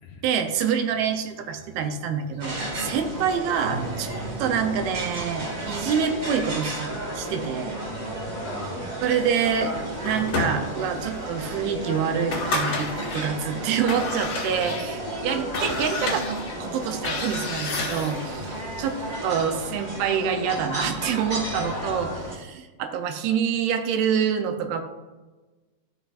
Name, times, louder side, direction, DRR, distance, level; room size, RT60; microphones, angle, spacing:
voice 1, 0.2-6.9 7.2-7.8 9.0-9.7 10.0-24.8, right 7 dB, 80° right, 6 dB, 2.6 m, -26 dB
sound 1, 0.8-6.0, right 3 dB, 55° right, 3.3 m, -41 dB
sound 2, 2.4-22.3, right 1 dB, 30° right, 1.6 m, -33 dB
voice 2, 7.8-8.9 14.4-15.0 18.3-18.8 21.5-22.2, left 4 dB, 70° left, -3 dB, 2.2 m, -40 dB
sound 3, 9.4-11.0 11.5-11.6 12.1-13.3 13.7-18.3, left 2 dB, 55° left, 2.0 m, -30 dB
13.5 x 5.8 x 2.5 m, 1.2 s
omnidirectional pair, 4.5 m